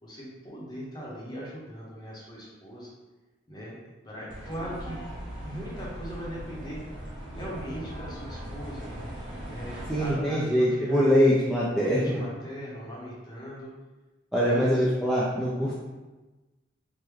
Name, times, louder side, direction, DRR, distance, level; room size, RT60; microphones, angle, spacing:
voice 1, 0.0-2.9 3.5-3.8 4.0-6.8 7.3-8.9 9.4-11.2 11.7-13.7 14.4-14.8, equal, 20° left, -6 dB, 0.7 m, -39 dB
sound 1, 4.3-10.1, equal, 25° right, 1.2 m, -39 dB
voice 2, 9.9-12.2 14.3-15.7, equal, ahead, -9 dB, 0.3 m, -23 dB
3.4 x 2.1 x 3.1 m, 1.2 s
head